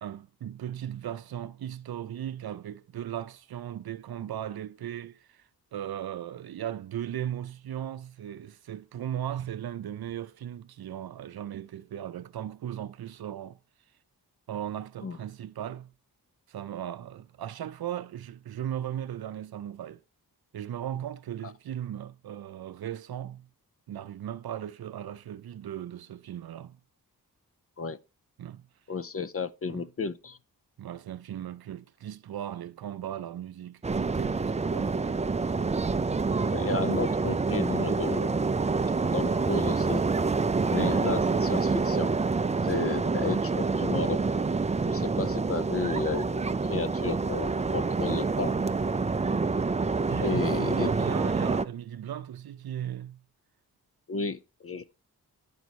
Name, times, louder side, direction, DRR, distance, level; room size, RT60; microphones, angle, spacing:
voice 1, 0.0-5.4 5.7-13.6 14.5-15.9 16.5-20.0 20.5-23.5 23.9-26.8 28.4-28.7 29.7-29.8 30.8-35.2 50.1-53.2, right 10 dB, 75° right, 0.6 m, -37 dB
voice 2, 28.9-30.4 36.5-38.4 39.1-40.0 40.7-42.1 42.6-44.2 44.9-48.6 50.2-50.9 54.1-54.9, left 4 dB, 40° left, 0.5 m, -32 dB
sound 1, 33.8-51.7, right 4 dB, 20° right, 0.4 m, -27 dB
10.5 x 4.0 x 4.6 m
cardioid pair, 50°, 38 cm